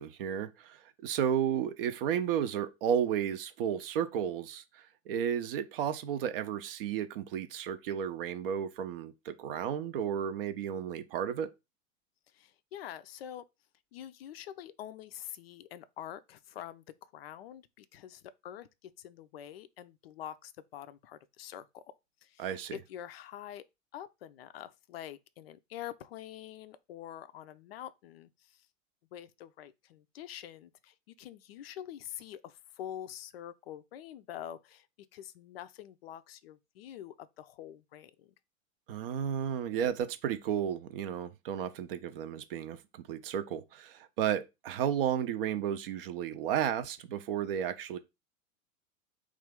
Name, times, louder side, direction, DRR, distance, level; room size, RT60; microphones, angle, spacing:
voice 1, 0.0-11.5 22.4-22.8 38.9-48.0, right 9 dB, 45° right, 0.5 m, -33 dB
voice 2, 12.3-13.5 13.9-21.8 22.2-23.7 23.9-28.7 29.1-34.9 35.1-38.3, left 11 dB, 50° left, 0.4 m, -46 dB
3.1 x 2.3 x 3.5 m
figure-of-eight pair, 90°, 40 cm